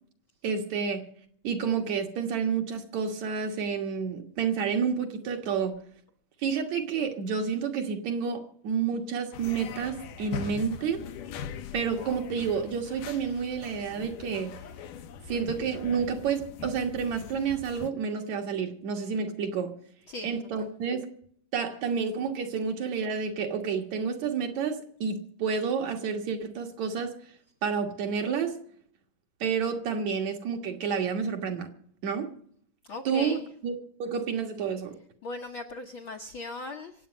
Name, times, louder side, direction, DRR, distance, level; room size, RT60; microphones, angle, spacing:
voice 1, 0.4-1.0 1.4-5.8 6.4-11.0 11.7-14.6 15.3-19.7 20.2-21.1 21.5-27.2 27.6-28.5 29.4-31.7 32.0-32.3 33.0-33.7 34.0-35.0, right 6 dB, 60° right, 2.7 m, -30 dB
sound 1, 9.3-17.9, left 7 dB, 80° left, 2.4 m, -41 dB
voice 2, 32.9-33.4 35.2-36.9, left 2 dB, 60° left, 1.3 m, -38 dB
25.5 x 8.6 x 5.2 m
omnidirectional pair, 3.7 m